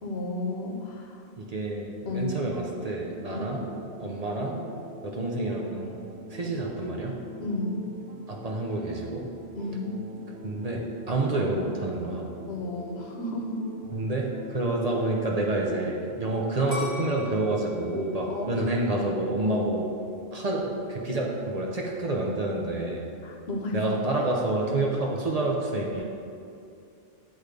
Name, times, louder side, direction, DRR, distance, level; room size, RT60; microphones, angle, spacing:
voice 1, 0.0-1.2 2.1-2.5 3.3-3.5 7.4-7.9 9.5-10.0 12.5-13.7 18.3-18.7 23.2-23.8, left 2 dB, 75° left, 0 dB, 1.1 m, -32 dB
voice 2, 1.4-3.6 4.0-4.6 5.0-6.0 6.3-7.1 8.3-9.3 10.4-12.4 13.9-19.9 20.3-23.1 23.7-26.0, right 2 dB, 45° right, -1 dB, 0.7 m, -28 dB
sound 1, 3.1-16.1, left 1 dB, 80° right, 0.9 m, -45 dB
sound 2, 16.7-19.6 20.1-20.6, left 2 dB, 40° left, 1.4 m, -38 dB
8.6 x 3.2 x 5.0 m, 2.5 s
omnidirectional pair, 1.1 m